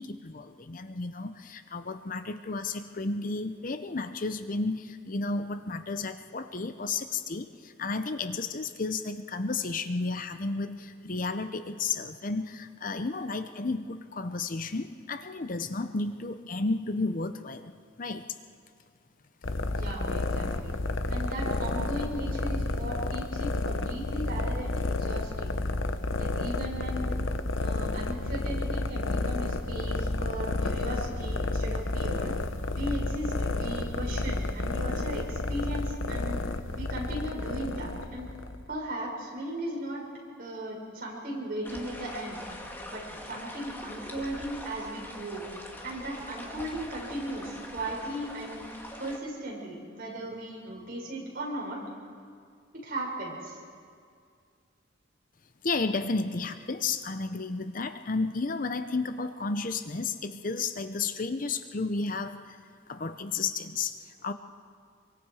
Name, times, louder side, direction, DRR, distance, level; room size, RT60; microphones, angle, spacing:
voice 1, 0.0-18.2 55.6-62.6 62.9-64.3, left 3 dB, 45° left, 9 dB, 0.7 m, -32 dB
sound 1, 19.4-38.7, left 2 dB, 80° left, 0.9 m, -31 dB
voice 2, 19.7-20.7 21.1-25.6 26.1-27.1 27.6-32.3 32.7-36.4 36.7-38.3 38.7-40.0 40.4-42.4 42.9-45.4 45.8-48.6 49.0-51.8 52.7-53.6, right 1 dB, 50° right, -3 dB, 6.2 m, -37 dB
sound 2, 41.6-49.2, left 1 dB, 10° left, 1.9 m, -43 dB
26.0 x 24.0 x 4.9 m, 2.2 s
head